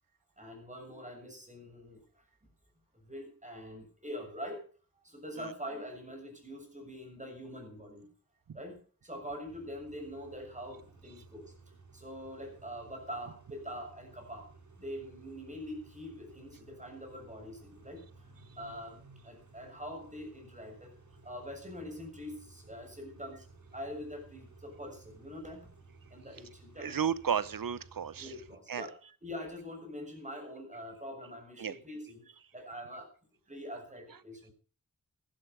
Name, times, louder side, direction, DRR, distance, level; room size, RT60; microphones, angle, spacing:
voice 1, 0.4-2.0 3.1-4.6 5.0-8.1 8.5-8.8 9.0-11.5 11.9-14.5 14.8-18.0 18.6-20.9 21.2-23.4 23.7-25.7 26.1-27.0 28.2-28.9 29.2-32.3 32.5-33.1 33.5-34.5, equal, 20° right, 3 dB, 6.9 m, -44 dB
Car / Idling / Accelerating revving vroom, 9.5-28.6, right 4 dB, 60° right, 3.7 m, -57 dB
voice 2, 26.8-28.3 28.7-28.9 31.6-31.8, right 7 dB, 80° right, 18 dB, 0.8 m, -33 dB
15.0 x 12.0 x 5.5 m, 0.41 s
wide cardioid pair, 75°, 34 cm